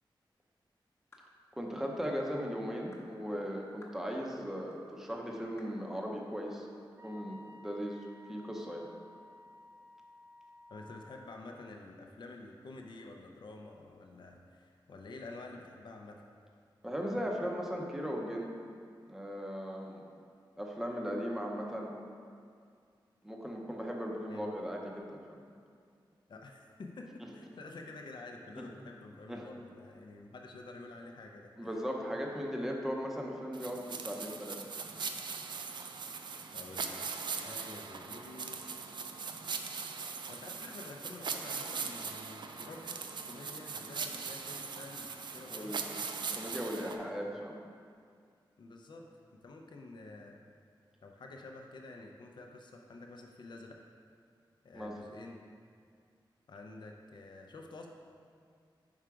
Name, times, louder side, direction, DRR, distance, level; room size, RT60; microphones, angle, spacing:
sound 1, 1.1-1.3 2.0-2.2 2.9-3.1 3.8-4.0 4.7-4.8 5.6-5.8, left 2 dB, 30° left, 0.8 m, -58 dB
voice 1, 1.5-6.7 7.0-8.0 8.3-8.9 16.8-18.5 19.1-20.0 20.6-22.0 23.2-25.2 28.6-28.7 29.3-29.5 31.6-34.6 45.5-45.9 46.4-47.6 54.7-55.0, equal, 5° right, -1 dB, 0.6 m, -37 dB
Wind instrument woodwind instrument, 7.0-11.4, left 2 dB, 50° right, 0.9 m, -55 dB
voice 2, 10.7-16.2 24.3-24.4 26.3-31.7 36.5-37.0 37.3-38.6 40.3-45.1 45.3-45.9 46.7-47.3 48.6-49.1 49.4-50.4 51.0-53.8 54.6-55.4 56.5-57.9, left 2 dB, 60° left, 2 dB, 0.5 m, -49 dB
sound 2, 33.5-47.0, right 5 dB, 65° right, 0.4 m, -40 dB
4.9 x 4.7 x 4.5 m, 2.2 s
wide cardioid pair, 155°, 9 cm